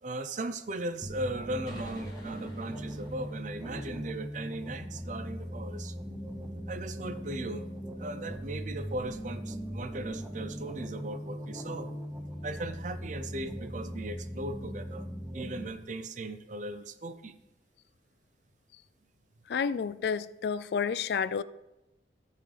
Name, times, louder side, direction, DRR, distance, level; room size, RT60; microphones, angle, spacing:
voice 1, 0.0-6.0 6.7-7.7 8.0-11.9 12.4-15.1 15.3-17.4, right 2 dB, 45° right, 0.5 m, -38 dB
sound 1, 1.0-15.7, equal, 10° right, 0.7 m, -39 dB
sound 2, 1.7-5.1, left 1 dB, 25° left, 1.5 m, -54 dB
voice 2, 19.5-21.4, left 6 dB, 65° left, 0.3 m, -30 dB
14.0 x 5.6 x 3.3 m
head